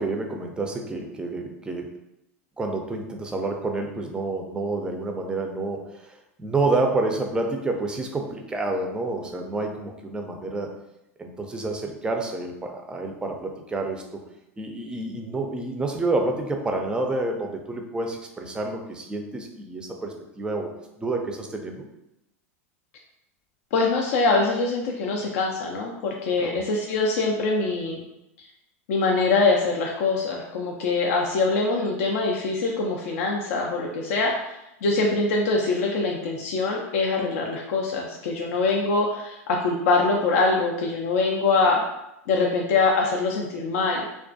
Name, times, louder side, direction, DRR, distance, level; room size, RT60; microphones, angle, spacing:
voice 1, 0.0-1.9 2.6-10.7 11.2-14.2 14.6-20.7 21.0-21.9 26.4-26.6, right 2 dB, 10° right, 3 dB, 0.4 m, -29 dB
voice 2, 23.7-28.0 28.4-28.5 28.9-41.8 42.3-44.0, left 3 dB, 70° left, 0 dB, 0.4 m, -23 dB
2.3 x 2.2 x 2.5 m, 0.87 s
hypercardioid pair, 105°, 8 cm